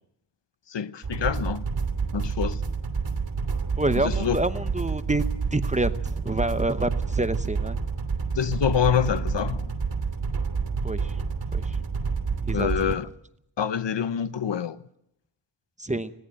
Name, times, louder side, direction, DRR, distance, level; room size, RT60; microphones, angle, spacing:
voice 1, 0.7-1.6 2.1-2.6 4.0-4.4 8.3-9.7 12.5-13.1 13.6-14.8, left 8 dB, 60° left, 0.8 m, -26 dB
sound 1, 1.0-13.0, right 5 dB, 65° right, 2.7 m, -28 dB
voice 2, 3.8-5.2 5.5-7.8 10.8-11.2 11.5-11.8 12.5-13.0 15.8-16.1, right 2 dB, 15° right, 0.8 m, -28 dB
20.5 x 17.0 x 7.6 m
wide cardioid pair, 95°, 48 cm